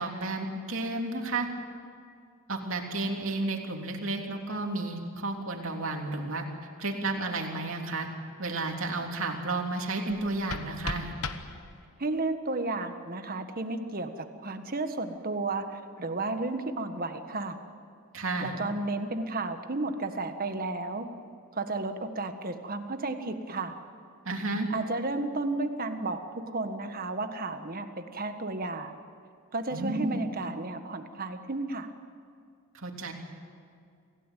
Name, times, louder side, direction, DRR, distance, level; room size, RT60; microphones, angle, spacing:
voice 1, 0.0-1.5 2.5-6.4 6.8-8.1 8.4-11.1 18.1-18.5 24.2-24.7 29.7-30.3 32.7-33.1, right 2 dB, 60° right, 2 dB, 3.2 m, -32 dB
sound 1, 10.1-12.1, left 4 dB, 75° left, 1.3 m, -38 dB
voice 2, 12.0-17.6 18.4-21.1 21.5-23.7 24.7-26.2 26.5-29.0 29.5-31.9, right 2 dB, 40° right, 7 dB, 1.5 m, -33 dB
27.0 x 16.5 x 9.2 m, 2.3 s
head